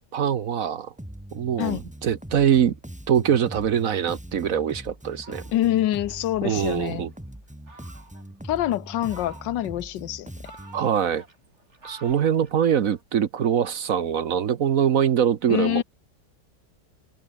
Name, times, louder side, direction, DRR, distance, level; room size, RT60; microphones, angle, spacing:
voice 1, 0.1-0.9 1.3-2.7 3.1-5.4 6.4-7.1 10.7-11.2 11.8-15.8, right 8 dB, 55° right, 1.2 m, -23 dB
Bass guitar, 1.0-10.9, right 1 dB, 5° right, 1.6 m, -42 dB
Fowl, 5.1-7.2 7.7-8.3 8.9-9.8 10.2-13.0, right 3 dB, 40° right, 3.6 m, -50 dB
voice 2, 5.5-7.1 8.5-10.3 15.5-15.8, left 13 dB, 85° left, 1.4 m, -25 dB
omnidirectional pair, 1.9 m